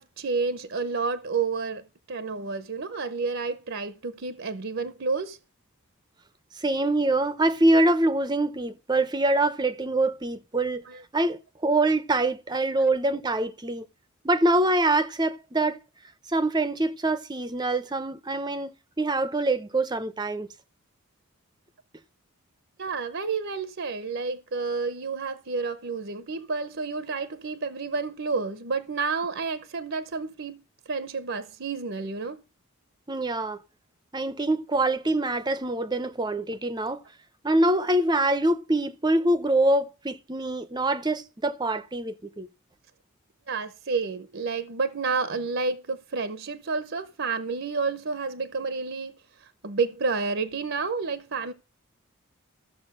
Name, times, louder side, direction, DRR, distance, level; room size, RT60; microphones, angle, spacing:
voice 1, 0.0-5.4 10.8-11.0 12.8-12.9 22.8-30.6 30.9-32.4 43.5-51.5, right 4 dB, 55° right, 0.7 m, -30 dB
voice 2, 6.6-10.8 11.1-13.8 14.2-15.8 16.3-20.5 33.1-33.6 34.1-37.0 37.4-42.5, right 2 dB, 20° right, 0.6 m, -24 dB
14.0 x 6.8 x 6.6 m
head